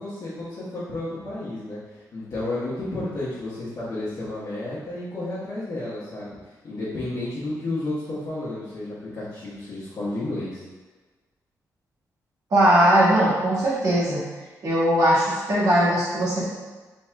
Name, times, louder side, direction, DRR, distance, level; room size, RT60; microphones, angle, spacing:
voice 1, 0.0-10.6, left 2 dB, 60° left, -11 dB, 1.2 m, -32 dB
voice 2, 12.5-14.2 14.6-16.5, right 1 dB, 65° right, -8 dB, 1.5 m, -19 dB
4.2 x 3.5 x 2.2 m, 1.3 s
cardioid pair, 95°, 7 cm